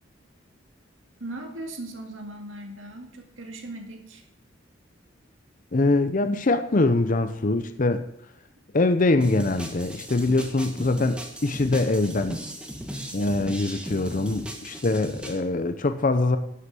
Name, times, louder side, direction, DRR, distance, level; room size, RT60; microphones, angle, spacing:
voice 1, 1.2-4.2, right 1 dB, 90° right, 2 dB, 2.1 m, -38 dB
voice 2, 5.7-8.0 8.7-12.4 13.1-16.4, left 2 dB, 40° left, 9 dB, 0.6 m, -23 dB
sound 1, 9.2-15.4, equal, 5° right, 1.4 m, -37 dB
11.5 x 6.4 x 7.6 m, 0.78 s
head